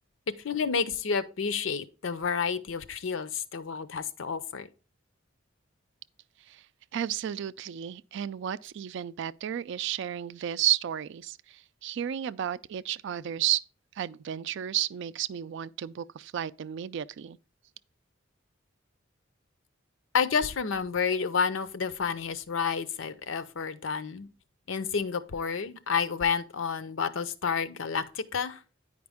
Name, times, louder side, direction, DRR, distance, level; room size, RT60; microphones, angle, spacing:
voice 1, 0.4-4.7 20.1-24.3 24.7-28.6, left 6 dB, 75° left, 0.6 m, -30 dB
voice 2, 6.9-13.6 14.0-17.4, right 11 dB, 65° right, 0.3 m, -32 dB
9.5 x 5.1 x 3.5 m
head